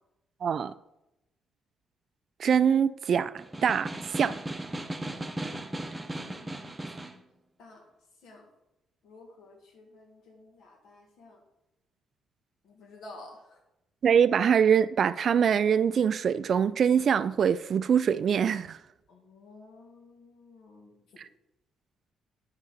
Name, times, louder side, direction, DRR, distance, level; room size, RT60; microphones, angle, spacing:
voice 1, 0.4-0.7 2.4-4.4 14.0-18.8 21.2-21.3, right 7 dB, 55° right, 0.3 m, -24 dB
Snare drum, 3.4-7.2, right 1 dB, 15° right, 0.7 m, -37 dB
voice 2, 6.1-6.6 6.9-7.1 7.6-7.8 8.2-8.5 9.0-11.4 12.6-13.6 19.1-21.2, left 2 dB, 75° left, 1.9 m, -52 dB
9.6 x 5.0 x 4.1 m
cardioid pair, 90°, 0 cm